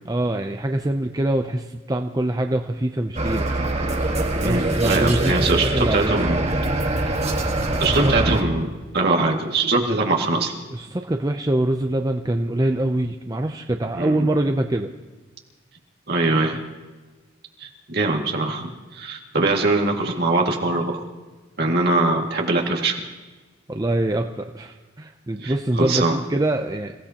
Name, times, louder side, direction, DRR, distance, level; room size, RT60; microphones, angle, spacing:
voice 1, 0.1-3.5 4.4-6.3 7.8-8.1 10.7-14.9 23.7-26.9, right 1 dB, 20° right, 4 dB, 0.5 m, -24 dB
sound 1, 3.2-8.4, right 2 dB, 35° right, 1.5 m, -23 dB
voice 2, 4.4-6.6 7.8-8.7 8.9-10.5 13.9-14.3 16.1-16.6 17.6-21.0 21.6-23.0 25.4-26.2, right 2 dB, 55° right, 0 dB, 2.1 m, -22 dB
28.5 x 16.5 x 2.9 m, 1.3 s
head